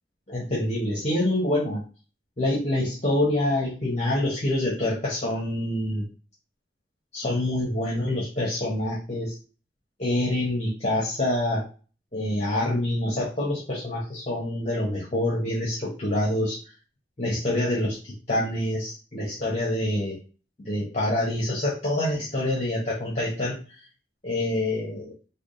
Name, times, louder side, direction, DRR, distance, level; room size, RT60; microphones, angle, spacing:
voice 1, 0.3-1.8 2.4-6.0 7.1-9.3 10.0-11.7 12.1-16.6 17.2-20.2 20.6-23.6 24.2-25.1, left 1 dB, 35° left, -5 dB, 0.9 m, -26 dB
3.4 x 2.3 x 3.7 m, 0.36 s
head